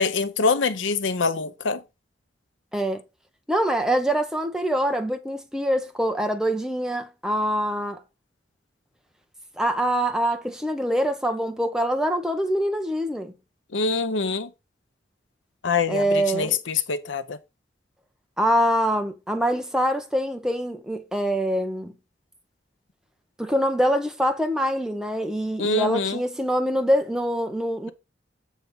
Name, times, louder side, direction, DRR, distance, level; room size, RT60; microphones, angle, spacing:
voice 1, 0.0-1.8 13.7-14.5 15.6-17.4 25.6-26.2, left 4 dB, 85° left, 0.7 m, -24 dB
voice 2, 2.7-3.0 3.5-8.0 9.6-13.3 15.9-16.6 18.4-21.9 23.4-27.9, equal, 5° right, 0.9 m, -24 dB
8.3 x 3.5 x 5.4 m
head